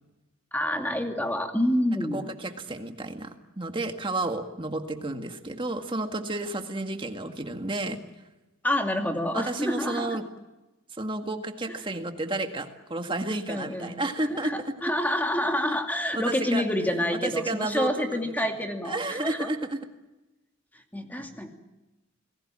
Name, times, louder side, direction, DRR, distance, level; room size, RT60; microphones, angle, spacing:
voice 1, 0.5-2.2 8.6-10.2 13.5-13.9 14.3-19.5 20.9-21.5, left 1 dB, 10° left, 4 dB, 2.6 m, -28 dB
voice 2, 2.1-8.0 9.3-10.2 10.9-14.7 16.1-16.7 17.1-18.5 18.8-19.8, right 2 dB, 25° right, 6 dB, 1.9 m, -31 dB
28.5 x 20.0 x 7.5 m, 1.1 s
head